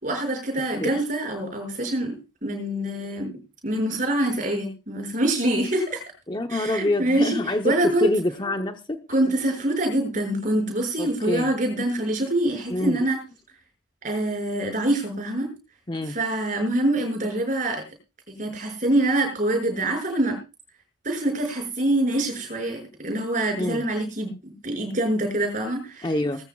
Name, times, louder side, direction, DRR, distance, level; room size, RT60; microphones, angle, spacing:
voice 1, 0.0-6.0 6.5-8.1 9.1-13.2 14.0-15.5 16.1-17.8 18.4-20.4 21.0-26.1, right 1 dB, 40° right, 4 dB, 6.2 m, -25 dB
voice 2, 6.3-9.0 11.0-11.5 12.7-13.0 15.9-16.1 23.6-23.8 26.0-26.4, left 1 dB, 25° left, 6 dB, 0.9 m, -26 dB
20.5 x 14.5 x 2.4 m, 0.28 s
head